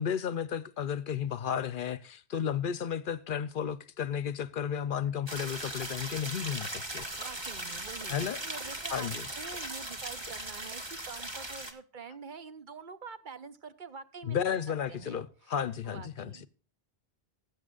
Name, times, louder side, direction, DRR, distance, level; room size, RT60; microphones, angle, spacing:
voice 1, 0.0-7.0 8.1-8.4 8.9-9.3 14.2-16.3, left 8 dB, 55° left, 0.8 m, -33 dB
sound 1, 5.3-11.7, right 1 dB, 25° right, 1.4 m, -39 dB
voice 2, 7.0-14.6 14.9-15.2 15.4-15.5 15.8-16.5, right 5 dB, 50° right, 0.9 m, -46 dB
19.0 x 8.2 x 2.4 m
omnidirectional pair, 1.1 m